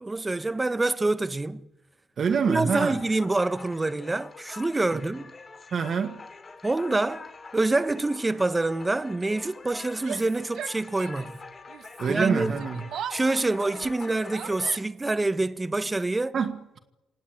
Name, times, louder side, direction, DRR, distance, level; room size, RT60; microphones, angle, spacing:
voice 1, 0.0-1.6 2.5-5.3 6.6-7.3 7.5-11.4 12.1-12.6 13.1-16.3, right 2 dB, 20° right, 1.2 m, -26 dB
sound 1, 2.2-14.7, left 4 dB, 35° left, 3.0 m, -45 dB
voice 2, 2.2-3.0 4.9-5.0 5.7-6.2 12.0-12.8 16.3-16.8, right 6 dB, 50° right, 1.8 m, -26 dB
Yell, 9.9-11.4 11.7-15.1, right 10 dB, 70° right, 1.1 m, -40 dB
27.0 x 18.5 x 9.2 m
cardioid pair, 90°, 0 cm